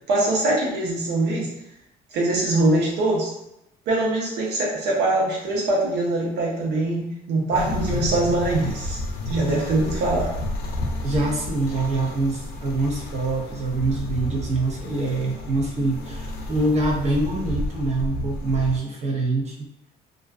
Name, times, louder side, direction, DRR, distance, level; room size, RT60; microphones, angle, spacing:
voice 1, 0.1-1.5 2.1-3.3 3.9-9.0 9.3-10.3, right 2 dB, 85° right, -3 dB, 0.8 m, -23 dB
sound 1, 7.5-18.8, left 1 dB, 70° left, 0.5 m, -31 dB
voice 2, 11.0-19.6, right 2 dB, 40° right, -1 dB, 0.7 m, -25 dB
2.4 x 2.2 x 2.3 m, 0.84 s
cardioid pair, 110°, 17 cm